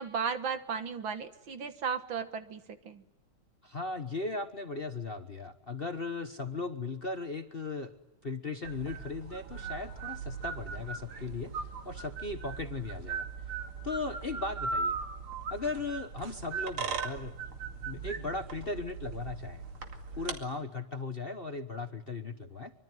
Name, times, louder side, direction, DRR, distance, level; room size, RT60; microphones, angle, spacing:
voice 1, 0.0-3.0, right 6 dB, 70° right, 9 dB, 2.4 m, -35 dB
voice 2, 3.6-7.9 8.2-11.5 11.8-13.3 13.8-15.0 15.5-17.3 17.9-19.6 20.2-22.7, left 3 dB, 35° left, 7 dB, 1.2 m, -37 dB
sound 1, 8.6-20.4, right 5 dB, 85° right, 3.3 m, -38 dB
24.5 x 24.0 x 9.3 m, 0.94 s
omnidirectional pair, 2.3 m